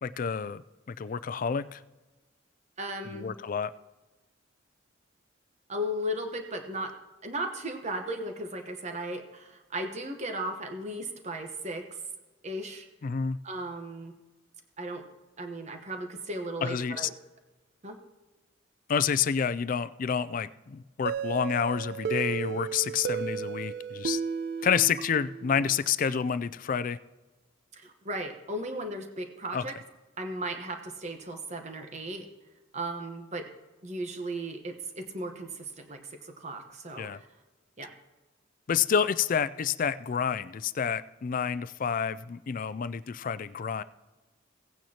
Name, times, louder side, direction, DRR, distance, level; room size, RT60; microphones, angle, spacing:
voice 1, 0.0-1.8 3.0-3.7 13.0-13.4 16.6-17.1 18.9-24.2 24.6-27.0 29.5-29.6 37.0-37.2 38.7-43.8, left 7 dB, 45° left, 16 dB, 0.4 m, -29 dB
voice 2, 2.8-3.3 5.7-6.9 7.2-11.9 12.4-12.8 13.4-14.1 14.8-15.0 15.4-17.1 17.8-18.0 27.7-29.7 30.2-32.3 32.7-33.5 33.8-37.3 37.8-37.9, right 1 dB, 35° right, 5 dB, 1.1 m, -36 dB
sound 1, 21.1-25.7, right 7 dB, 55° right, 0.5 m, -34 dB
17.0 x 9.1 x 2.9 m, 1.2 s
head